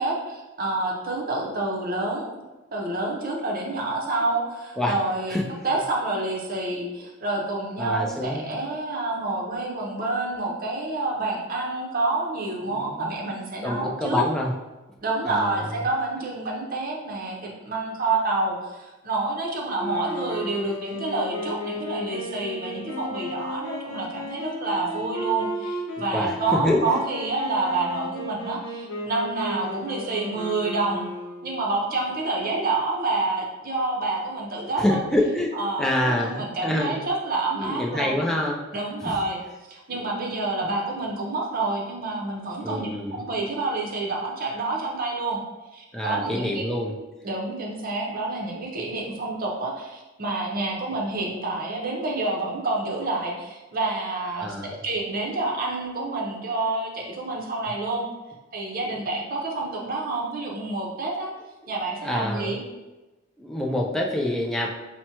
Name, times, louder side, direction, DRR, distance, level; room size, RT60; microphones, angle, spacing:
voice 1, 0.0-2.3 2.7-5.4 5.6-14.3 15.0-31.1 31.4-35.0 35.5-38.2 38.7-39.4 39.7-45.4 45.7-46.7 47.2-58.1 58.5-61.3 61.7-62.6, right 2 dB, 45° right, -1 dB, 0.7 m, -28 dB
voice 2, 7.8-8.5 11.2-11.4 12.6-13.1 13.6-14.5 15.2-15.6 26.1-27.0 32.4-32.6 34.8-37.0 37.6-38.6 39.1-39.2 39.9-40.3 40.6-40.8 42.6-43.2 45.9-46.9 54.4-54.8 61.6-61.7 62.0-62.5 63.4-64.7, left 1 dB, ahead, -2 dB, 0.4 m, -27 dB
sound 1, 19.8-31.6, left 1 dB, 60° left, 0.7 m, -34 dB
5.8 x 2.1 x 2.9 m, 1.1 s
head